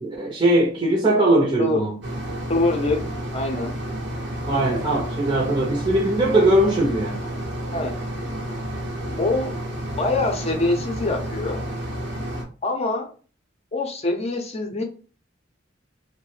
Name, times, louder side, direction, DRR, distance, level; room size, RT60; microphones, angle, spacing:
voice 1, 0.0-2.0 4.5-7.2, right 1 dB, 30° right, 0.7 m, -20 dB
sound 1, 2.0-12.4, equal, 65° right, 0.9 m, -30 dB
voice 2, 2.5-3.0 3.3-3.7 7.7-7.9 9.2-9.5 9.9-11.6 12.6-13.1 13.7-14.8, left 2 dB, 35° left, 0.7 m, -24 dB
3.1 x 2.2 x 3.1 m
head